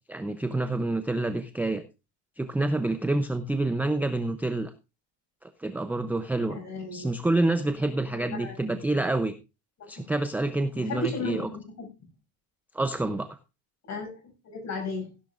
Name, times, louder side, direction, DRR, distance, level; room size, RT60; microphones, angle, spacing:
voice 1, 0.1-1.8 2.4-4.7 5.4-6.6 6.9-9.3 9.9-11.5 12.7-13.4, right 2 dB, 5° right, 9 dB, 0.5 m, -27 dB
voice 2, 6.5-7.1 8.1-8.6 9.8-10.0 10.7-11.9 13.9-14.2 14.4-15.1, left 2 dB, 35° left, 4 dB, 6.4 m, -34 dB
16.5 x 11.0 x 2.4 m, 0.28 s
cardioid pair, 180°, 44 cm